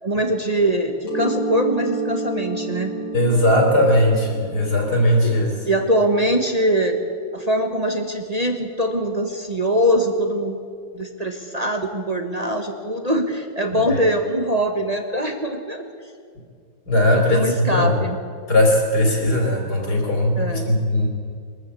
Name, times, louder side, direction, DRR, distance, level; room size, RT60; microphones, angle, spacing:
voice 1, 0.0-2.9 5.2-5.3 5.6-7.0 7.3-10.6 10.9-15.9 17.1-18.2 20.3-20.7, right 1 dB, 25° right, 4 dB, 1.3 m, -22 dB
Mallet percussion, 1.1-6.6, right 3 dB, 80° left, 5.4 m, -30 dB
voice 2, 3.1-5.5 13.7-14.0 16.9-17.9 18.5-21.1, left 1 dB, 55° left, 2 dB, 4.5 m, -18 dB
22.5 x 14.0 x 8.5 m, 2.2 s
omnidirectional pair, 2.1 m